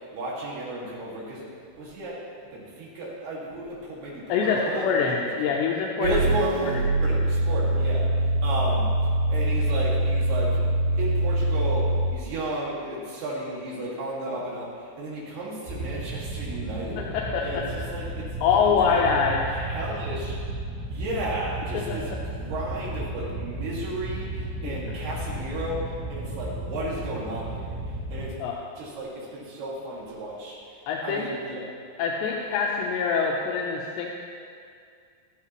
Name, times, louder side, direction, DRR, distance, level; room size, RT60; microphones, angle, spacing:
voice 1, 0.1-2.2 2.5-5.5 6.0-6.7 7.0-8.9 9.3-10.6 10.9-17.0 17.4-18.3 18.7-19.0 19.5-20.4 20.9-28.3 28.8-31.6, right 1 dB, 70° right, -5 dB, 4.1 m, -33 dB
voice 2, 4.3-6.1 17.1-17.9 18.4-19.4 21.7-22.0 24.6-24.8 28.4-28.6 30.9-31.3 32.0-34.1, left 6 dB, 90° left, -2 dB, 3.1 m, -25 dB
sound 1, 6.0-12.2, right 1 dB, 50° right, 2.0 m, -24 dB
sound 2, 15.7-28.3, right 2 dB, 90° right, 5.2 m, -34 dB
13.5 x 13.5 x 3.1 m, 2.2 s
omnidirectional pair, 4.9 m